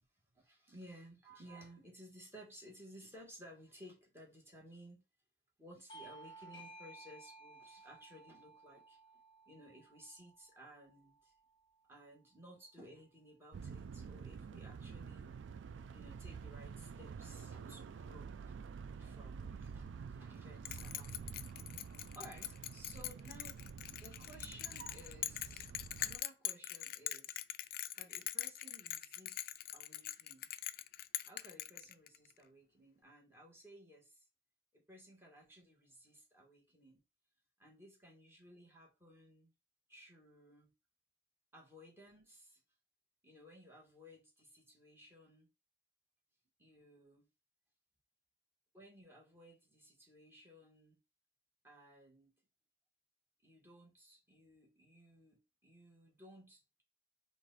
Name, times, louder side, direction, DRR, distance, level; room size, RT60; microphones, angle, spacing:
voice 1, 0.3-5.0 5.6-11.3 11.9-15.3 15.9-21.3 22.1-23.6 24.0-25.7 26.0-27.4 27.9-29.4 29.7-30.5 31.2-34.2 34.7-37.0 37.6-39.5 39.9-40.7 41.5-42.6 43.2-45.5 46.6-47.3 48.7-51.0 51.6-52.3 53.4-56.8, equal, 15° right, 1.7 m, -58 dB
Bell / Doorbell, 5.9-11.0, right 2 dB, 25° left, 1.3 m, -56 dB
sound 1, 13.5-26.2, right 6 dB, 85° right, 0.3 m, -49 dB
Bell, 20.6-32.3, left 14 dB, 55° left, 0.3 m, -42 dB
4.7 x 2.6 x 4.0 m
head